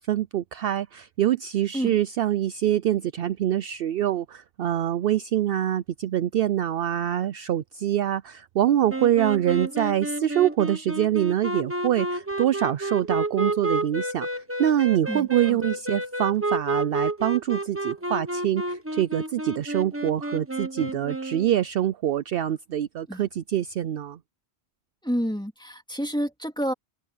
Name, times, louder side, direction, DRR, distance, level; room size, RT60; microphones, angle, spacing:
voice 1, 0.0-24.2, right 11 dB, 65° right, 0.7 m, -25 dB
sound 1, 8.9-21.5, right 2 dB, 10° right, 1.2 m, -30 dB
voice 2, 15.1-15.6 23.1-23.2 25.0-26.7, equal, 5° left, 3.2 m, -29 dB
omnidirectional pair, 1.1 m